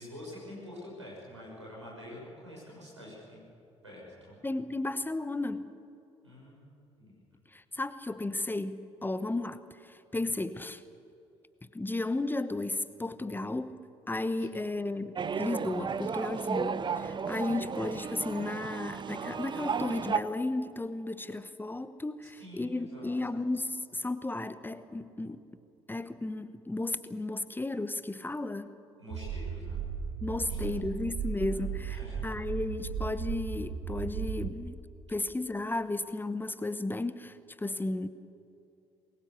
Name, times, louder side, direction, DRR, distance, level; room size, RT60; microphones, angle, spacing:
voice 1, 0.0-3.4 3.8-4.4 6.2-6.7 7.0-7.1 14.4-14.6 22.4-23.2 29.0-29.8 30.4-30.8 31.5-32.2, left 1 dB, 90° right, -4 dB, 6.5 m, -47 dB
voice 2, 4.4-5.7 7.5-10.8 11.7-13.8 14.1-25.4 25.9-28.7 30.2-34.8 35.1-38.1, left 2 dB, 15° left, 13 dB, 1.0 m, -34 dB
sound 1, 15.2-20.2, right 6 dB, 30° right, 0.8 m, -34 dB
sound 2, 29.1-34.5, right 7 dB, 60° right, 1.8 m, -36 dB
24.0 x 21.0 x 7.1 m, 2.8 s
figure-of-eight pair, 50°, 15 cm